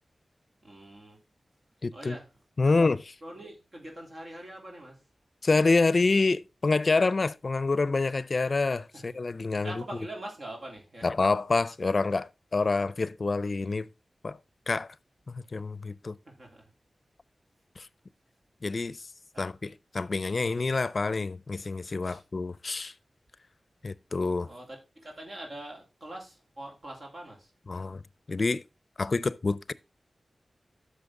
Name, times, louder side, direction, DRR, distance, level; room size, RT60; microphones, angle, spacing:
voice 1, 0.6-1.2 1.9-2.3 2.6-2.7 3.2-5.0 8.9-9.0 9.5-11.1 16.3-16.7 19.3-19.5 22.0-22.2 24.5-27.5, right 1 dB, 60° right, 3.1 m, -43 dB
voice 2, 1.8-2.2 2.6-3.0 5.4-9.7 11.0-13.9 14.2-14.4 14.7-14.9 15.3-16.2 17.8-17.9 18.6-19.0 19.4-22.9 23.8-24.5 27.7-28.0 28.3-28.6 29.0-29.7, left 3 dB, 55° left, 0.5 m, -27 dB
10.5 x 6.4 x 3.7 m
wide cardioid pair, 60°, 0 cm